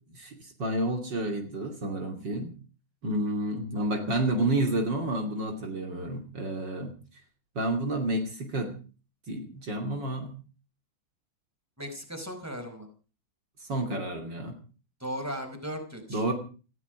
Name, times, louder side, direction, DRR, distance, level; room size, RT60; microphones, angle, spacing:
voice 1, 0.1-2.5 3.0-6.9 7.5-8.8 9.3-10.3 13.7-14.6 16.1-16.3, right 1 dB, 60° right, 5 dB, 3.4 m, -30 dB
voice 2, 11.8-12.9 15.0-16.2, equal, 5° right, 6 dB, 4.8 m, -37 dB
17.5 x 15.5 x 5.1 m, 0.37 s
omnidirectional pair, 2.2 m